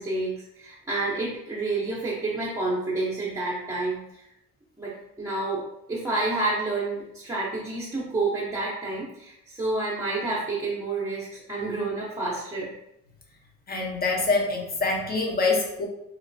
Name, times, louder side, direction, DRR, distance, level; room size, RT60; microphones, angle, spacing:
voice 1, 0.0-4.2 4.8-4.9 5.2-5.6 5.9-12.7, right 2 dB, 10° right, -7 dB, 0.7 m, -29 dB
voice 2, 13.7-15.9, left 3 dB, 30° left, 0 dB, 0.7 m, -25 dB
3.0 x 2.0 x 2.6 m, 0.81 s
cardioid pair, 90°, 30 cm